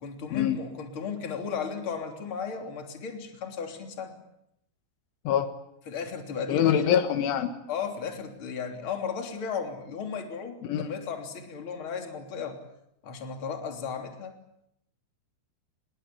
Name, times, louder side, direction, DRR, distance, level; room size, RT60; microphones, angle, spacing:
voice 1, 0.0-4.2 5.9-6.8 7.7-12.6 13.0-14.4, left 6 dB, 30° left, 4 dB, 3.4 m, -35 dB
voice 2, 6.5-7.5 10.6-10.9, left 9 dB, 75° left, 8 dB, 3.9 m, -24 dB
26.0 x 21.5 x 8.5 m, 0.80 s
omnidirectional pair, 5.6 m